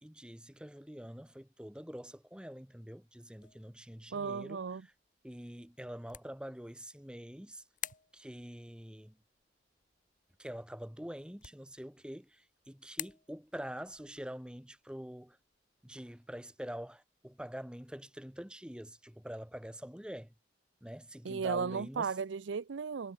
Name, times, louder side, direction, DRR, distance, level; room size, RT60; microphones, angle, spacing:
voice 1, 0.0-4.6 5.2-7.6 8.1-9.2 10.4-15.4 15.8-20.3 20.8-22.1, equal, 5° right, 1.2 m, -45 dB
sound 1, 3.4-17.6, left 11 dB, 45° left, 2.9 m, -52 dB
voice 2, 4.1-4.8 21.2-23.1, right 5 dB, 80° right, 0.5 m, -35 dB
head